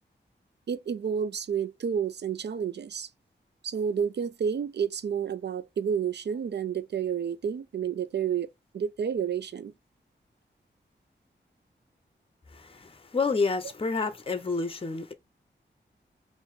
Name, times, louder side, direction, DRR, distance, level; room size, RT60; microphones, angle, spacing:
voice 1, 0.7-3.1 3.6-8.5 8.7-9.7, right 7 dB, 65° right, 0.4 m, -30 dB
voice 2, 12.5-15.1, left 4 dB, 30° left, 0.6 m, -29 dB
3.6 x 2.6 x 3.1 m
cardioid pair, 45°, 19 cm